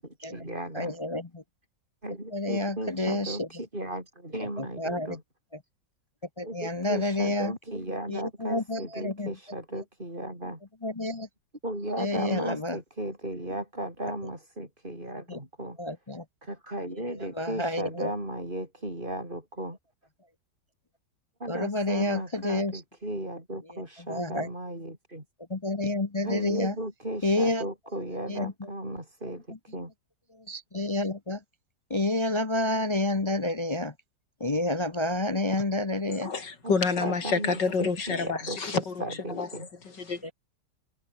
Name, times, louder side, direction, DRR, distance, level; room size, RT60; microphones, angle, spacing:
voice 1, 0.0-1.0 2.0-5.2 6.4-10.6 11.6-15.8 16.4-19.8 21.4-25.2 26.2-29.5 29.7-29.9 36.6-37.5 37.8-39.7, right 1 dB, 25° right, 8.4 m, -36 dB
voice 2, 0.7-1.4 2.3-3.5 4.4-5.2 6.4-7.5 8.1-9.3 10.8-11.3 12.0-12.8 15.3-15.4 15.8-16.2 17.4-18.1 21.5-22.8 24.1-24.5 25.5-26.7 27.2-27.7 28.3-28.5 30.5-31.4 31.9-33.9 34.4-36.3 40.2-40.3, left 2 dB, 30° left, 0.6 m, -29 dB
voice 3, 36.1-39.0 39.3-40.3, left 4 dB, 75° left, 3.6 m, -29 dB
omnidirectional pair, 1.9 m